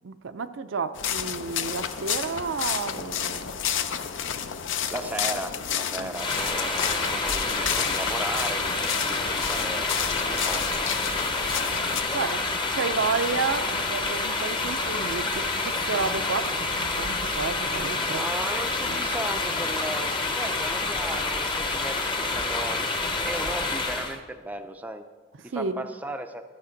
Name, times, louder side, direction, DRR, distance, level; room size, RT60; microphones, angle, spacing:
voice 1, 0.0-3.5 6.0-6.1 12.1-18.3 18.9-19.0 25.5-25.9, right 4 dB, 70° right, 10 dB, 0.5 m, -31 dB
sound 1, 0.9-12.0, left 8 dB, 65° left, 0.6 m, -31 dB
voice 2, 4.9-11.5 18.0-22.9 23.2-25.0 25.4-26.4, right 1 dB, 10° right, 7 dB, 0.4 m, -36 dB
sound 2, 6.1-24.2, left 3 dB, 25° left, 0.9 m, -28 dB
13.5 x 6.6 x 5.2 m, 1.4 s
head